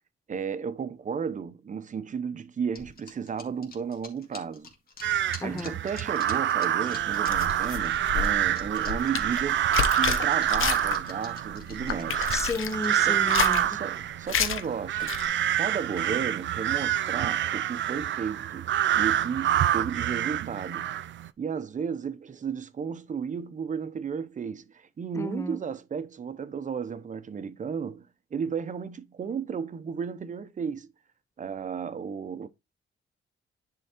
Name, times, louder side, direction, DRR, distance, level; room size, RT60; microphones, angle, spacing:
voice 1, 0.3-4.7 5.4-9.7 10.0-12.3 13.0-13.2 13.7-15.1 15.5-20.9 21.4-30.9 31.4-32.5, right 6 dB, 40° right, 0.8 m, -34 dB
sound 1, 2.8-13.1, left 4 dB, 50° left, 2.2 m, -47 dB
sound 2, 5.0-21.3, right 11 dB, 65° right, 0.5 m, -27 dB
voice 2, 5.4-5.8 12.3-13.8 25.2-25.6, left 2 dB, 15° left, 0.6 m, -33 dB
sound 3, 7.0-11.2 11.5-12.8 13.2-13.7 14.3-14.6 15.0-15.3, left 8 dB, 85° left, 1.1 m, -30 dB
10.0 x 3.8 x 4.4 m
wide cardioid pair, 150°, 20 cm